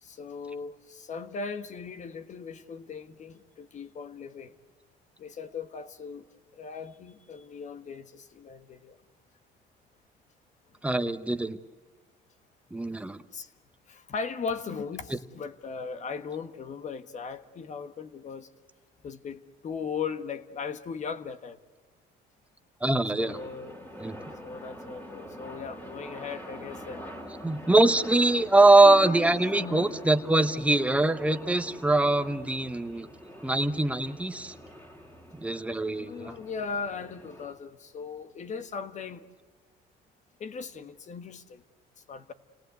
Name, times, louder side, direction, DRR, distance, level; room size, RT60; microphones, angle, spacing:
voice 1, 0.0-4.6 5.2-6.2 6.5-9.0 13.3-13.5 13.9-18.5 19.0-21.6 23.1-23.8 24.4-27.0 28.4-28.5 28.8-29.9 35.8-39.2 40.4-41.6 42.1-42.3, left 5 dB, 45° left, 1.4 m, -38 dB
voice 2, 10.8-11.6 12.7-13.2 22.8-23.4 24.0-24.1 27.4-33.1 33.4-34.5 35.3-36.3, right 2 dB, 5° right, 1.1 m, -23 dB
sound 1, 23.2-37.5, equal, 10° left, 3.7 m, -44 dB
29.5 x 18.5 x 8.1 m
cardioid pair, 110°, 17 cm